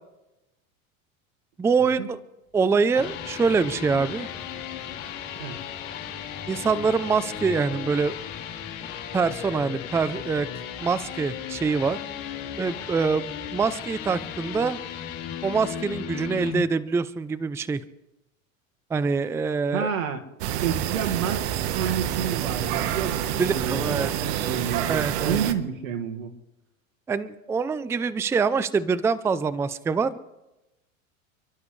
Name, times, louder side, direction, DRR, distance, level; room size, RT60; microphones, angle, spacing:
voice 1, 1.6-2.2 2.5-4.3 6.5-8.2 9.1-10.5 10.8-12.0 12.6-13.3 13.5-14.8 15.4-17.8 18.9-19.9 23.4-24.2 24.9-25.4 27.1-30.3, right 5 dB, 5° right, 16 dB, 0.4 m, -24 dB
sound 1, 2.7-16.6, left 9 dB, 80° left, 4.8 m, -36 dB
voice 2, 19.7-20.2 20.6-26.3, right 8 dB, 90° right, 5 dB, 2.0 m, -30 dB
sound 2, 20.4-25.5, right 11 dB, 60° right, 1.3 m, -28 dB
29.5 x 11.5 x 3.2 m, 0.97 s
supercardioid pair, 115°, 39 cm